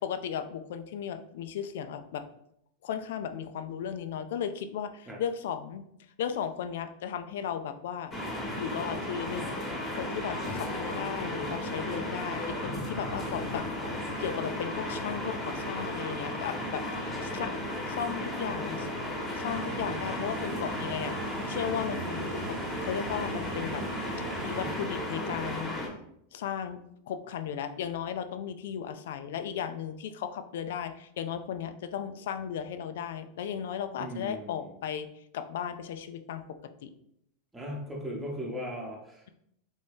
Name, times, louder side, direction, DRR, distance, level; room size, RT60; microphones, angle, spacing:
voice 1, 0.0-2.2 2.8-5.8 6.2-8.1 8.6-9.6 10.0-13.7 14.0-17.5 17.9-18.9 19.3-21.2 21.5-23.9 24.2-25.8 26.3-26.8 27.1-35.1 35.3-36.9, left 8 dB, 75° left, 9 dB, 0.3 m, -35 dB
sound 1, 8.1-25.9, left 1 dB, 15° left, 1.1 m, -35 dB
Strum, 10.4-15.9, left 3 dB, 35° left, 0.6 m, -48 dB
sound 2, 19.4-24.9, right 7 dB, 55° right, 0.3 m, -41 dB
voice 2, 34.0-34.7 37.5-39.2, equal, 10° right, -2 dB, 0.9 m, -38 dB
3.5 x 2.7 x 3.5 m, 0.74 s
supercardioid pair, 125°, 0 cm